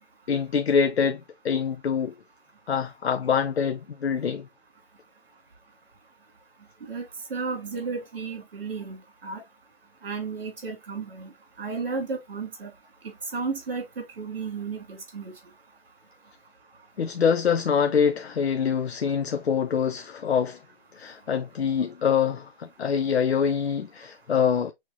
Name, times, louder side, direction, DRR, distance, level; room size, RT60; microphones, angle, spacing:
voice 1, 0.3-2.1 2.7-4.5 17.0-20.6 21.0-24.7, left 7 dB, 90° left, 0.7 m, -25 dB
voice 2, 6.9-9.4 10.0-11.3 11.6-12.7 13.3-15.3, right 4 dB, 65° right, 2.7 m, -33 dB
6.4 x 3.0 x 2.8 m
hypercardioid pair, 170°, 31 cm